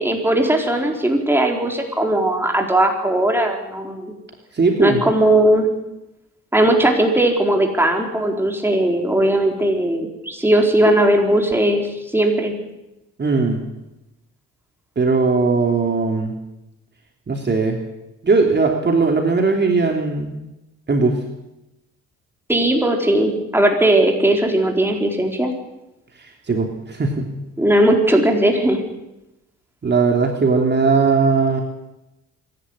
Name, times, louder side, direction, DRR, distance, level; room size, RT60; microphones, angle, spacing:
voice 1, 0.0-4.1 4.8-5.7 6.5-11.9 12.1-12.6 22.5-25.5 27.6-28.8, right 1 dB, 5° right, 2 dB, 4.5 m, -18 dB
voice 2, 4.5-5.0 13.2-13.6 14.9-16.3 17.3-17.8 18.2-20.3 20.9-21.2 26.2-27.3 29.8-31.6, right 4 dB, 35° right, 2 dB, 3.2 m, -18 dB
25.5 x 11.5 x 10.0 m, 0.95 s
cardioid pair, 90°, 30 cm